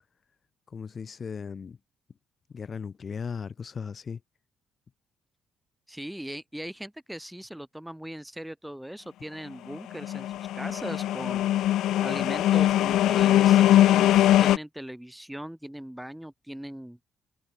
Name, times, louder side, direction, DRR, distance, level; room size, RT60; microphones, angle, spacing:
voice 1, 0.7-1.8 2.5-4.2, left 6 dB, 45° left, 3.6 m, -37 dB
voice 2, 5.9-10.3 10.5-11.6 12.0-17.0, equal, 5° right, 4.0 m, -39 dB
sound 1, 9.9-14.6, left 13 dB, 80° left, 0.5 m, -21 dB
cardioid pair, 90°, 0 cm